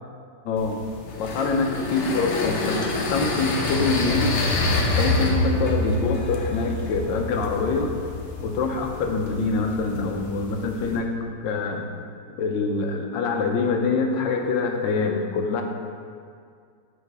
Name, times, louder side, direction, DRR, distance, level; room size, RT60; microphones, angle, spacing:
voice 1, 0.4-0.8 1.2-4.3 4.9-7.9 8.4-11.1 11.4-11.9 12.4-15.6, left 4 dB, 80° left, 3 dB, 1.4 m, -25 dB
sound 1, 0.6-11.0, left 2 dB, 55° left, 0.8 m, -27 dB
8.1 x 4.8 x 3.4 m, 2.2 s
omnidirectional pair, 2.0 m